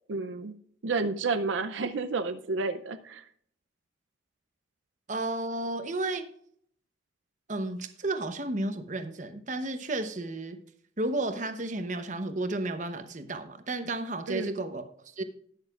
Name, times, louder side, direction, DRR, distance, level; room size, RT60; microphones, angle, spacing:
voice 1, 0.1-0.5 0.8-3.3 14.3-14.5, right 3 dB, 90° right, 9 dB, 0.6 m, -30 dB
voice 2, 5.1-6.3 7.5-10.6 11.0-14.8 15.2-15.3, right 2 dB, 40° right, 8 dB, 0.9 m, -32 dB
19.0 x 6.5 x 2.4 m, 0.64 s
head